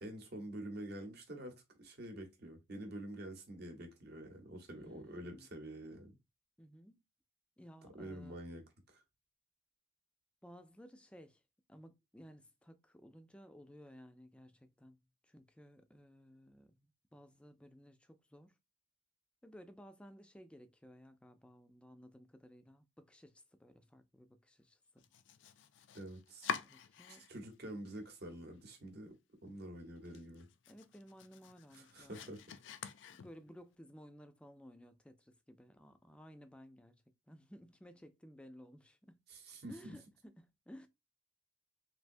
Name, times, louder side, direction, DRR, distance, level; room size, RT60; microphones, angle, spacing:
voice 1, 0.0-6.2 7.9-9.0 25.9-26.5 27.1-29.2 29.4-30.5 31.7-32.4 39.3-40.0, right 1 dB, 60° right, 0.9 m, -47 dB
voice 2, 4.8-5.5 6.6-7.0 7.6-8.4 10.4-11.4 11.7-15.0 15.2-18.6 19.4-25.0 26.6-27.2 30.7-32.6 33.1-39.2 39.7-40.9, equal, 5° left, 0.3 m, -57 dB
Domestic sounds home sounds, 25.0-27.5 27.9-28.6 29.0-29.1 29.5-29.6 30.0-33.7, left 7 dB, 80° left, 0.4 m, -47 dB
3.3 x 2.7 x 2.5 m
head